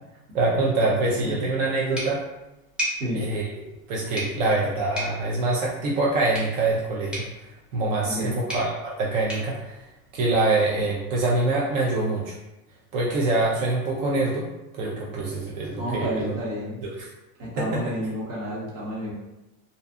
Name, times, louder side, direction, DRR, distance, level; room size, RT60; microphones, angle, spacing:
voice 1, 0.3-2.2 3.1-3.4 3.9-7.2 7.7-9.8 10.1-12.3 12.9-14.5 14.7-16.3 16.8-17.1, right 2 dB, 65° right, -4 dB, 0.6 m, -24 dB
sound 1, 1.9-10.6, equal, ahead, 0.5 m, -37 dB
voice 2, 8.1-8.4 15.8-16.8 17.4-19.1, equal, 30° right, -5 dB, 0.9 m, -30 dB
2.5 x 2.3 x 2.5 m, 0.96 s
supercardioid pair, 150°, 42 cm